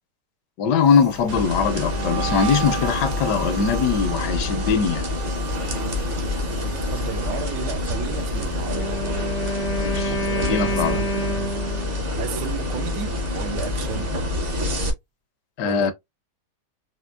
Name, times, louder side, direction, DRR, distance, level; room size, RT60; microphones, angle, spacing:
voice 1, 0.6-5.0 9.8-11.0 15.6-15.9, left 6 dB, 75° left, 1.2 m, -21 dB
sound 1, 0.8-10.0 10.3-10.7 11.1-12.6, right 9 dB, 60° right, 0.9 m, -36 dB
sound 2, 1.3-14.9, left 2 dB, 40° right, 1.0 m, -27 dB
voice 2, 6.6-9.0 10.1-11.6 12.2-14.2 15.6-15.9, right 9 dB, 75° right, 1.2 m, -33 dB
Wind instrument woodwind instrument, 8.6-12.1, equal, 35° left, 0.6 m, -28 dB
4.3 x 2.6 x 2.3 m
omnidirectional pair, 1.9 m